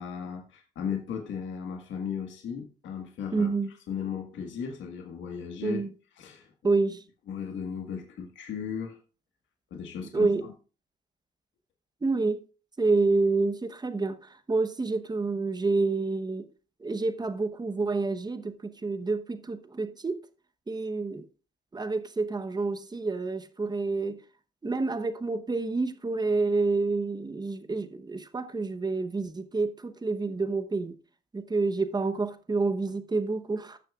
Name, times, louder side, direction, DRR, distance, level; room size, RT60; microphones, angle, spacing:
voice 1, 0.0-3.5 3.9-5.8 6.1-6.5 7.3-9.0 9.7-10.5, left 7 dB, 75° left, 1.7 m, -36 dB
voice 2, 3.3-3.7 5.6-5.9 6.6-7.0 10.1-10.4 12.0-12.4 12.8-14.2 14.5-16.4 16.8-20.2 20.7-21.2 21.7-24.2 24.6-30.9 31.3-33.8, right 3 dB, 20° right, 1.0 m, -28 dB
16.0 x 6.6 x 2.4 m
cardioid pair, 90°, 20 cm